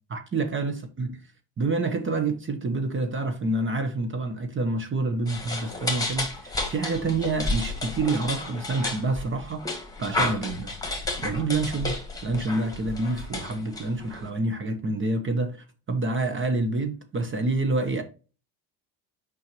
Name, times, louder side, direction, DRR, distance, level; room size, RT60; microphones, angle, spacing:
voice 1, 0.1-1.3 1.6-18.0, right 3 dB, 30° right, 1.1 m, -28 dB
sound 1, 5.3-14.3, left 2 dB, 10° left, 2.0 m, -32 dB
6.1 x 5.4 x 3.1 m
supercardioid pair, 90°, 41 cm